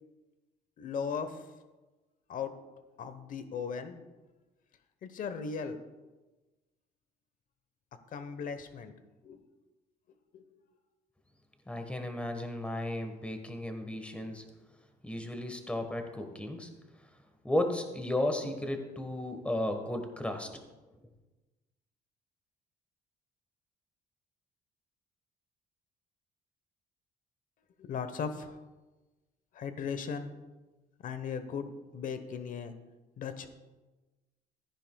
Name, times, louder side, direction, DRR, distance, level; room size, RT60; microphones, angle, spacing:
voice 1, 0.8-1.3 2.3-2.5 3.0-4.0 5.0-5.8 8.1-8.9 9.2-9.4 10.3-10.5 27.8-28.6 29.6-30.4 31.0-32.7 33.2-33.5, left 6 dB, 55° left, 10 dB, 1.0 m, -37 dB
voice 2, 11.7-14.4 15.0-16.7 17.4-20.6, left 1 dB, 5° left, 5 dB, 1.3 m, -34 dB
14.5 x 10.0 x 2.3 m, 1.2 s
cardioid pair, 110°, 17 cm